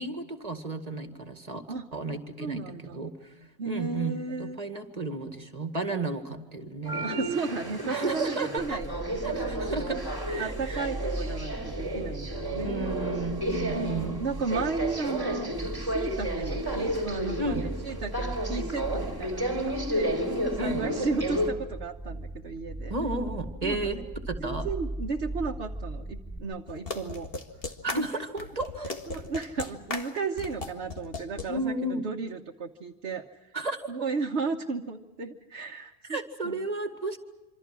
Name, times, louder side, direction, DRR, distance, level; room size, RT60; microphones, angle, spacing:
voice 1, 0.0-1.6 1.9-3.3 3.6-7.1 7.8-8.8 9.2-10.0 10.3-10.8 12.6-14.2 15.6-15.7 17.4-17.6 20.6-20.8 22.9-24.0 24.3-24.7 27.8-28.9 31.5-32.0 33.5-33.8 36.1-37.2, right 2 dB, 35° right, 7 dB, 2.2 m, -33 dB
voice 2, 2.4-3.0 3.6-4.6 7.0-10.0 10.4-12.8 13.7-20.1 20.6-22.9 23.6-24.0 24.4-27.3 27.9-28.1 29.1-33.5 33.9-36.2 36.4-36.6, right 4 dB, 75° right, 2 dB, 1.4 m, -34 dB
sound 1, 6.8-21.5, right 1 dB, 20° right, 3.4 m, -32 dB
sound 2, 8.6-26.4, right 2 dB, 10° left, 5.0 m, -38 dB
sound 3, 26.7-31.5, left 3 dB, 60° left, 2.1 m, -36 dB
26.5 x 26.0 x 6.2 m, 1.1 s
omnidirectional pair, 1.1 m